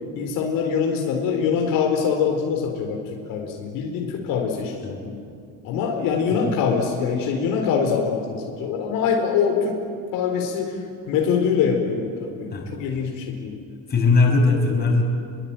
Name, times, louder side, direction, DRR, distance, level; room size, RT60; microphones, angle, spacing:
voice 1, 0.1-3.0 3.3-5.2 5.6-9.7 10.1-10.8 11.1-13.6, left 6 dB, 70° left, 1 dB, 4.5 m, -24 dB
voice 2, 13.9-15.0, left 3 dB, 25° left, 0 dB, 6.7 m, -19 dB
29.0 x 22.5 x 9.1 m, 2.3 s
cardioid pair, 145°, 35 cm